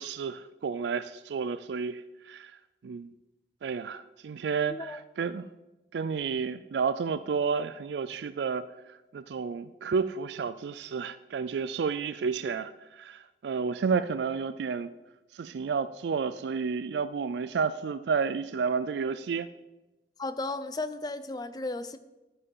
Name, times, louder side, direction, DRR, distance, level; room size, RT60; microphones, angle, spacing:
voice 1, 0.0-2.5 2.8-3.1 3.6-5.4 5.9-14.9 15.3-19.5, right 5 dB, 80° right, 13 dB, 0.4 m, -31 dB
voice 2, 4.7-5.0 20.2-22.0, left 2 dB, 25° left, 12 dB, 0.5 m, -34 dB
13.0 x 5.4 x 5.5 m, 1.0 s
head